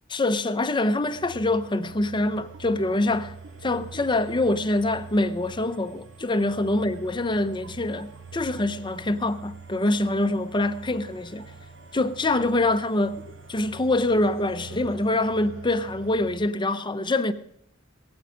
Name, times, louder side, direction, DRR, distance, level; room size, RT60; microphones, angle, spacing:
voice 1, 0.1-3.3 3.6-11.4 11.9-17.3, left 2 dB, 25° left, 0.7 m, -25 dB
sound 1, 1.0-16.4, right 4 dB, 65° right, 1.7 m, -44 dB
19.5 x 8.8 x 5.1 m
head